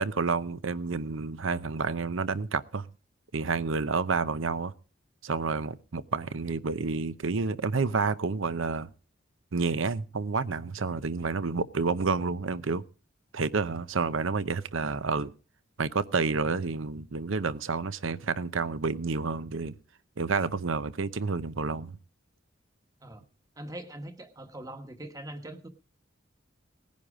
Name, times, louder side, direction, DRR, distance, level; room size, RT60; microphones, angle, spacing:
voice 1, 0.0-2.9 3.3-4.7 5.2-8.9 9.5-12.8 13.3-15.3 15.8-19.7 20.2-22.0, right 4 dB, 80° right, 0.7 m, -29 dB
voice 2, 23.6-25.7, right 1 dB, 15° right, 1.3 m, -42 dB
18.5 x 10.5 x 4.9 m
head